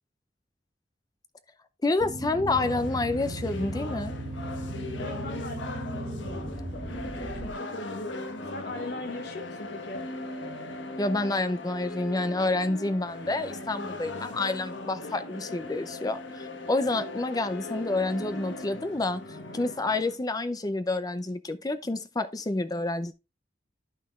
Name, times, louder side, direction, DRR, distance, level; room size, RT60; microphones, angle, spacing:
voice 1, 1.8-4.1 11.0-19.2 19.5-23.1, left 2 dB, 20° left, 0.5 m, -28 dB
sound 1, 2.0-7.5, right 1 dB, 35° right, 1.0 m, -36 dB
sound 2, 2.5-20.2, left 2 dB, 85° left, 1.3 m, -39 dB
voice 2, 5.0-10.0, left 1 dB, 60° left, 0.9 m, -40 dB
11.5 x 5.7 x 2.4 m
head